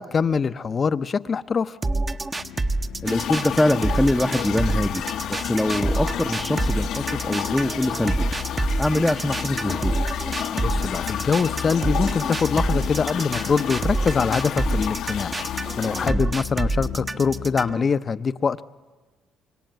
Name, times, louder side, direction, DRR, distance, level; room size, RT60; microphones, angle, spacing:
voice 1, 0.0-1.8 10.6-15.3 15.8-18.6, left 5 dB, 35° left, 14 dB, 0.8 m, -24 dB
sound 1, 1.8-17.8, right 2 dB, 20° right, 0.9 m, -27 dB
sound 2, 2.3-17.7, left 9 dB, 90° left, 2.0 m, -37 dB
sound 3, 3.0-16.1, left 9 dB, 75° left, 1.3 m, -31 dB
voice 2, 3.0-8.3 8.8-9.9 16.0-16.2, left 1 dB, 5° left, 2 dB, 0.8 m, -24 dB
26.0 x 24.5 x 9.2 m, 1.3 s
cardioid pair, 110°, 0 cm